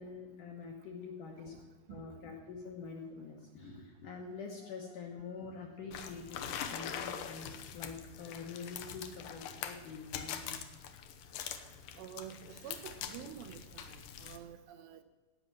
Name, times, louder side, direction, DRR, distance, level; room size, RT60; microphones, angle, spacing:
voice 1, 0.0-1.6 1.9-10.6, left 5 dB, 70° left, 0 dB, 2.1 m, -46 dB
sound 1, 5.9-14.4, left 8 dB, 90° left, 1.9 m, -43 dB
voice 2, 12.0-15.0, right 9 dB, 80° right, 9 dB, 3.0 m, -49 dB
17.5 x 5.9 x 7.4 m, 1.4 s
omnidirectional pair, 5.1 m